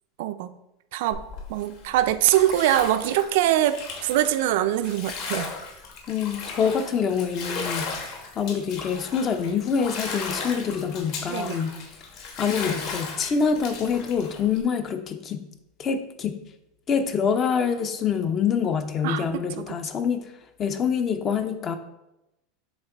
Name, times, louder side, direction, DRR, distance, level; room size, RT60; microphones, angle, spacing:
voice 1, 0.2-0.6 0.9-1.2 1.5-5.5 11.3-11.6 19.0-19.8, right 12 dB, 60° right, 11 dB, 0.3 m, -23 dB
Bathtub (filling or washing), 1.1-14.6, left 4 dB, 45° left, 1.1 m, -36 dB
voice 2, 6.1-11.7 12.4-15.4 15.8-16.4 16.9-20.3 20.6-21.8, left 6 dB, 20° left, 9 dB, 0.4 m, -26 dB
7.3 x 2.9 x 4.5 m, 0.90 s
supercardioid pair, 170°, 0 cm